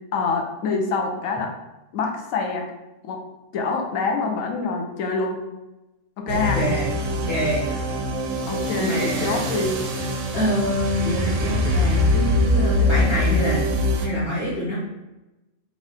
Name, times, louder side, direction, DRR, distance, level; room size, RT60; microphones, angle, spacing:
voice 1, 0.1-1.5 1.9-2.7 3.0-3.2 3.5-5.4 6.2-6.6 8.5-9.8, left 4 dB, 80° left, 2 dB, 1.1 m, -25 dB
voice 2, 6.3-6.9 7.3-7.6 8.8-9.4 10.3-13.6 14.0-14.8, equal, 35° left, -10 dB, 1.5 m, -25 dB
sound 1, 6.3-14.1, left 1 dB, 70° right, 0.9 m, -23 dB
3.7 x 2.6 x 3.3 m, 1.0 s
omnidirectional pair, 1.4 m